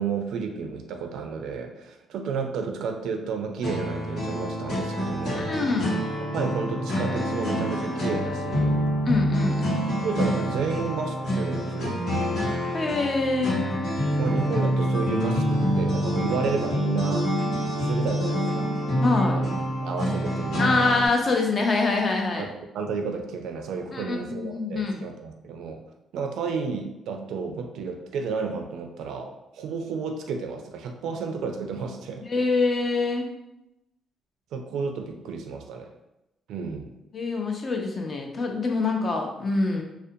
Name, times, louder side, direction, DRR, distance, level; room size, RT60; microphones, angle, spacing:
voice 1, 0.0-5.5 6.3-8.8 10.0-12.0 14.2-17.3 17.8-18.7 19.3-19.5 19.8-21.0 22.4-25.8 26.1-32.3 34.5-35.9 36.5-36.9, right 5 dB, 80° right, 4 dB, 0.3 m, -32 dB
sound 1, 3.6-21.1, equal, 70° left, 1.1 m, -26 dB
voice 2, 5.3-5.9 9.1-9.8 12.7-13.6 19.0-19.4 20.6-22.5 23.9-25.0 32.3-33.3 37.1-39.8, left 3 dB, 40° left, 2 dB, 0.5 m, -25 dB
2.4 x 2.1 x 2.6 m, 0.92 s
cardioid pair, 90°, 0 cm